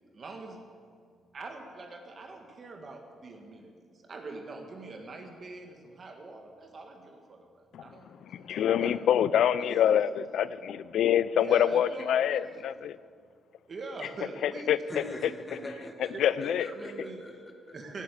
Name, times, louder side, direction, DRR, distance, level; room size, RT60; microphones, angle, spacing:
voice 1, 0.1-0.6 1.3-8.1 8.5-9.1 9.6-9.8 11.4-12.6 13.7-15.0 16.1-16.3 16.6-17.2 17.7-18.0, right 3 dB, 45° right, 3 dB, 1.7 m, -44 dB
voice 2, 8.3-13.0 14.4-14.8 15.2-15.3 16.0-16.7, left 10 dB, 75° left, 16 dB, 0.4 m, -26 dB
voice 3, 14.9-17.8, left 1 dB, 25° left, 3 dB, 1.6 m, -42 dB
17.5 x 8.2 x 8.3 m, 2.1 s
cardioid pair, 90°, 0 cm